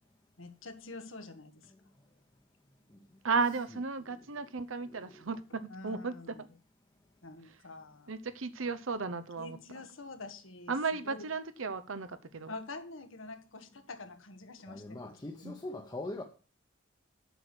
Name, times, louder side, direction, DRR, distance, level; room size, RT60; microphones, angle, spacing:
voice 1, 0.4-1.7 5.7-6.5 7.2-8.1 9.4-10.7 11.0-11.3 12.5-15.2, left 3 dB, 90° left, 1.5 m, -46 dB
voice 2, 3.2-6.4 8.1-9.8 10.7-12.5 15.4-15.5, right 4 dB, 90° right, 0.9 m, -34 dB
voice 3, 4.0-4.4 4.8-5.3 14.7-16.2, left 2 dB, 20° left, 0.9 m, -43 dB
8.1 x 6.2 x 8.0 m
head